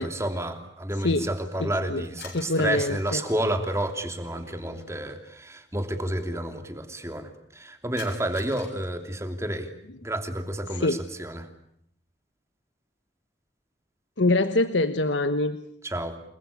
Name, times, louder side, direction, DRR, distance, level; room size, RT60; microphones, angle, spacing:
voice 1, 0.0-9.7 10.0-11.5 15.8-16.2, right 1 dB, 15° right, 7 dB, 2.9 m, -30 dB
voice 2, 1.6-2.0 2.3-3.2 10.8-11.0 14.2-15.6, left 2 dB, 85° left, 10 dB, 1.3 m, -24 dB
sound 1, 2.0-5.2 8.0-9.2, left 5 dB, 65° left, 7.2 m, -49 dB
29.0 x 22.0 x 8.5 m, 0.72 s
head